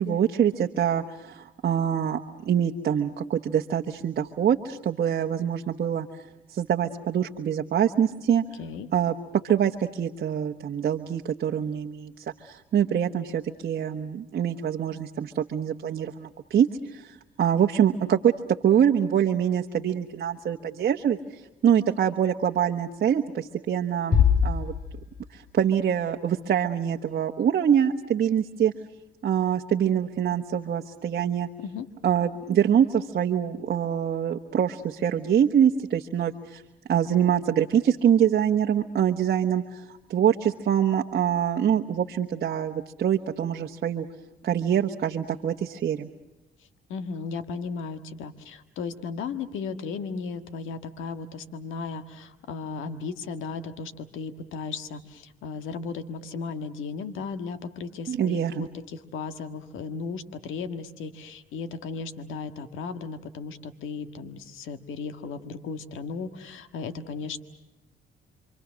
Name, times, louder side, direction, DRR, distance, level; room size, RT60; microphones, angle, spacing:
voice 1, 0.0-6.1 6.5-8.4 8.9-24.7 25.3-28.7 29.2-31.5 32.0-36.6 36.9-44.1 44.4-46.1 58.1-58.7, right 9 dB, 55° right, 3 dB, 1.2 m, -25 dB
voice 2, 8.6-8.9 31.6-31.9 46.9-67.4, left 5 dB, 85° left, 9 dB, 1.6 m, -35 dB
sound 1, 24.1-25.6, left 7 dB, 45° left, 2.3 m, -23 dB
28.0 x 24.5 x 6.3 m, 1.0 s
cardioid pair, 90°, 20 cm